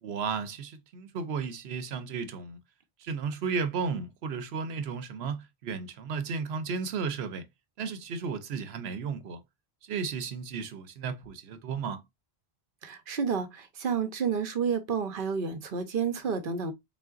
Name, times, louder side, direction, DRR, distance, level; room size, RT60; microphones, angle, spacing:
voice 1, 0.0-2.6 3.0-7.5 7.8-9.4 9.8-12.0, right 5 dB, 85° right, 1.0 m, -34 dB
voice 2, 12.8-16.7, right 6 dB, 60° right, 0.9 m, -30 dB
3.8 x 3.7 x 2.3 m
omnidirectional pair, 1.0 m